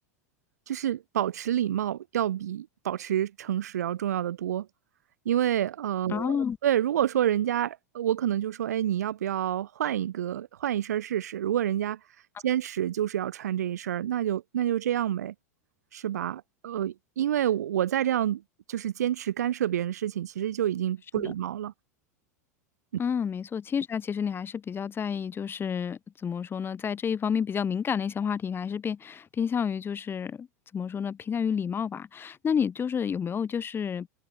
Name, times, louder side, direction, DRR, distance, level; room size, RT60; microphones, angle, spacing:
voice 1, 0.7-4.7 5.2-6.4 6.6-12.0 12.4-15.3 15.9-18.4 18.7-21.7, right 11 dB, 70° right, 4.7 m, -28 dB
voice 2, 6.1-6.6 21.1-21.3 23.0-30.5 30.7-34.1, left 7 dB, 25° left, 5.0 m, -30 dB
hypercardioid pair, 90°, 9 cm